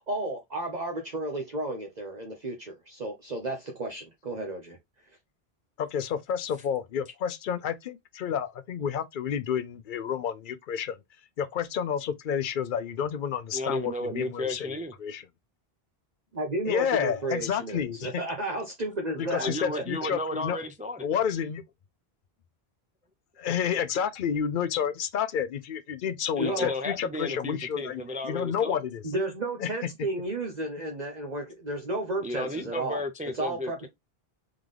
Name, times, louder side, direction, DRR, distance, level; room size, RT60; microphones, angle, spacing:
voice 1, 0.0-4.8 16.3-19.8 26.4-26.7 29.0-33.0 33.3-33.9, right 1 dB, 45° right, 0.9 m, -32 dB
voice 2, 5.8-11.0 11.4-14.7 15.0-15.2 16.7-18.2 19.2-20.6 21.0-21.6 23.4-29.0 29.6-29.7, left 8 dB, 60° left, 0.7 m, -30 dB
voice 3, 13.5-14.9 19.4-21.1 26.4-28.9 32.2-33.9, left 1 dB, 10° right, 0.4 m, -33 dB
3.7 x 3.7 x 3.3 m
omnidirectional pair, 1.1 m